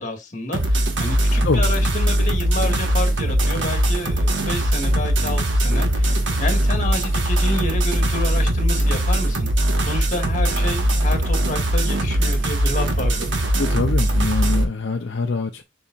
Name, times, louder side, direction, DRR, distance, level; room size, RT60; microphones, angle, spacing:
voice 1, 0.0-9.5 9.8-13.3, left 1 dB, 40° left, 1.9 m, -29 dB
sound 1, 0.5-14.6, right 1 dB, 70° right, 1.5 m, -20 dB
voice 2, 13.6-15.6, left 3 dB, 60° left, 0.7 m, -24 dB
7.0 x 5.6 x 2.5 m
head